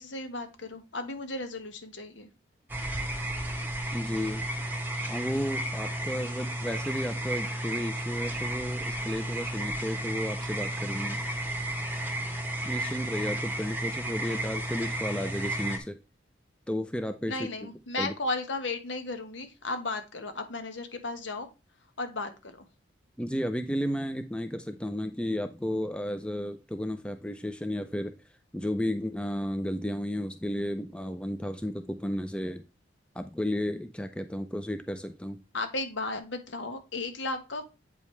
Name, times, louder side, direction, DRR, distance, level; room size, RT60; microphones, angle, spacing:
voice 1, 0.0-2.3 17.3-21.5 22.0-22.7 35.5-37.6, left 2 dB, 75° left, 7 dB, 1.3 m, -35 dB
sound 1, 2.7-15.8, right 1 dB, 10° right, 1.0 m, -33 dB
voice 2, 3.9-4.5 5.1-11.2 12.6-16.0 16.7-17.5 18.0-18.1 23.2-28.1 28.5-32.6 33.1-35.4, equal, 5° left, 9 dB, 0.5 m, -33 dB
8.4 x 5.1 x 3.2 m, 0.28 s
head